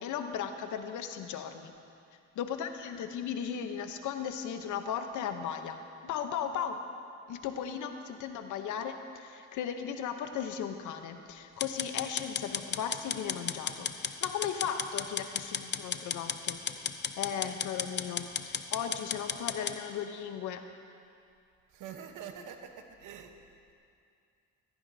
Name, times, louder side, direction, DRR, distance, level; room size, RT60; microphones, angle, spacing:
voice 1, 0.0-1.7 2.4-5.8 6.0-6.8 7.3-16.6 17.2-20.6, left 8 dB, 80° left, 7 dB, 0.9 m, -36 dB
sound 1, 11.6-19.8, left 7 dB, 35° left, 0.6 m, -34 dB
voice 2, 21.7-23.4, right 7 dB, 85° right, 5 dB, 1.1 m, -45 dB
16.0 x 14.0 x 2.7 m, 2.4 s
cardioid pair, 90°, 30 cm